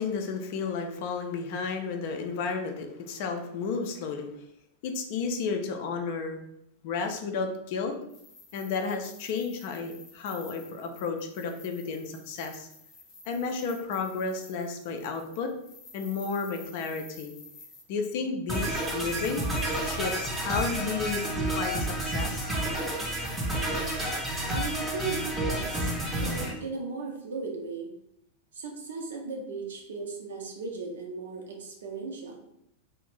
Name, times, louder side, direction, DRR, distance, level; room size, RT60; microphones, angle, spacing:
voice 1, 0.0-4.3 4.8-6.4 6.8-8.0 8.5-12.7 13.3-15.5 15.9-17.3 17.9-19.5 19.8-22.5, left 5 dB, 50° left, 4 dB, 0.4 m, -32 dB
sound 1, 8.0-17.8, left 3 dB, 30° left, 0.8 m, -51 dB
sound 2, 18.5-26.5, right 1 dB, 10° right, 0.6 m, -30 dB
voice 2, 24.5-27.9 28.5-32.4, right 4 dB, 65° right, 1 dB, 0.6 m, -37 dB
2.4 x 2.1 x 3.1 m, 0.75 s
figure-of-eight pair, 90°, 0 cm